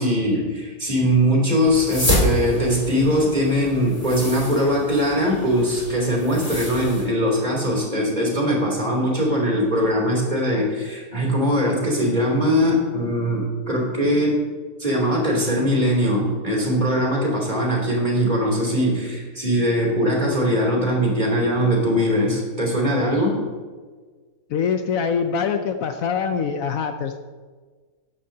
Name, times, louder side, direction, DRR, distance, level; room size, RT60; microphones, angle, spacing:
voice 1, 0.0-14.4 14.8-23.4, equal, 30° right, -2 dB, 3.1 m, -21 dB
sound 1, 1.7-7.0, left 1 dB, 25° left, 2.9 m, -28 dB
voice 2, 24.5-27.2, left 6 dB, 70° left, 7 dB, 1.0 m, -24 dB
14.0 x 10.5 x 2.8 m, 1.4 s
omnidirectional pair, 1.6 m